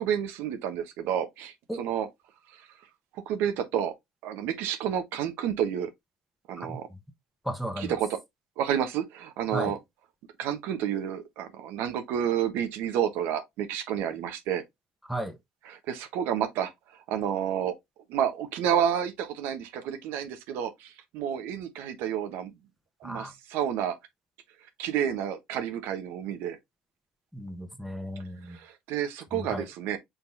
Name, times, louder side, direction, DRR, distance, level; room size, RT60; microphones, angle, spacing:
voice 1, 0.0-2.1 3.1-3.9 4.2-5.9 6.5-6.9 7.8-8.2 8.6-9.8 10.4-14.6 15.7-16.7 17.1-17.8 18.1-22.5 23.0-24.0 24.8-26.6 28.5-30.0, right 9 dB, 70° right, 1.0 m, -30 dB
voice 2, 6.6-7.0 7.4-7.9 9.5-9.8 15.0-15.4 23.0-23.3 27.3-28.6 29.3-29.7, equal, ahead, 1.0 m, -35 dB
4.8 x 3.9 x 2.6 m
supercardioid pair, 80°, 4 cm